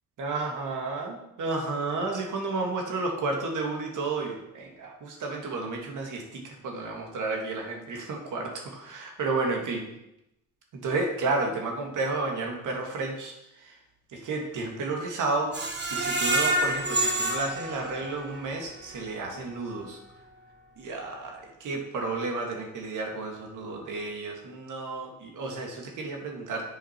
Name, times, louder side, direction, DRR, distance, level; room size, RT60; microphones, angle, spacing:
voice 1, 0.2-9.8 10.8-13.7 14.1-15.6 15.9-20.0 20.8-26.7, right 3 dB, 70° right, 1 dB, 1.9 m, -32 dB
Screech, 15.5-18.5 18.9-19.0 19.4-19.5, right 1 dB, 35° right, 1.3 m, -28 dB
7.5 x 5.0 x 4.5 m, 0.86 s
cardioid pair, 75°, 32 cm